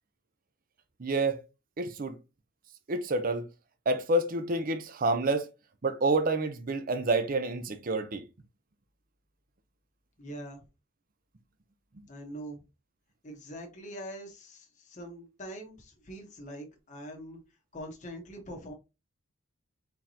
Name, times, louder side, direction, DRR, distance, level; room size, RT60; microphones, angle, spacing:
voice 1, 1.0-1.4 1.8-2.2 2.9-3.4 3.9-5.5 5.8-8.2, right 2 dB, 40° right, 0.6 m, -28 dB
voice 2, 10.2-10.6 12.1-12.6 13.2-17.4 17.7-18.7, equal, 35° left, 1.1 m, -43 dB
4.6 x 3.7 x 2.7 m
head